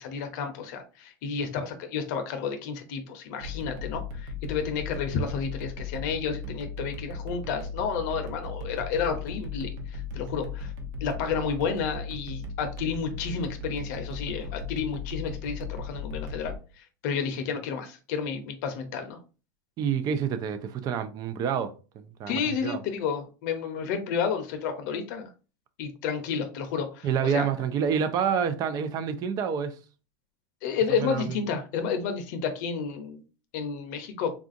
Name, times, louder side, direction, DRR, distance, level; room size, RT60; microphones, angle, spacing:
voice 1, 0.0-10.7 11.0-19.2 22.3-25.3 25.8-27.5 30.6-33.2 33.5-34.3, left 6 dB, 60° left, 0.6 m, -31 dB
sound 1, 3.4-16.6, left 3 dB, 65° right, 0.8 m, -37 dB
voice 2, 19.8-22.8 27.0-29.8 31.0-31.3, right 7 dB, 40° right, 0.5 m, -28 dB
3.6 x 2.4 x 2.5 m
hypercardioid pair, 115°, 10 cm